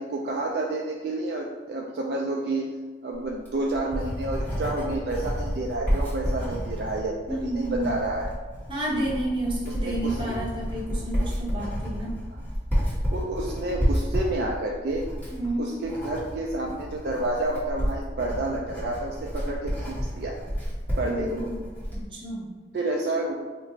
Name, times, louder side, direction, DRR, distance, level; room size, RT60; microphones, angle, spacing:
voice 1, 0.0-2.6 3.0-8.3 9.7-10.2 13.1-15.1 15.6-20.4 21.0-21.5 22.7-23.3, right 2 dB, 60° right, -1 dB, 0.3 m, -30 dB
Writing, 3.3-22.1, equal, 10° left, 1.1 m, -30 dB
voice 2, 7.3-8.0 8.7-12.2 15.3-15.7 21.0-21.6 21.9-22.5, right 1 dB, 25° right, -5 dB, 0.9 m, -30 dB
2.9 x 2.5 x 4.2 m, 1.3 s
head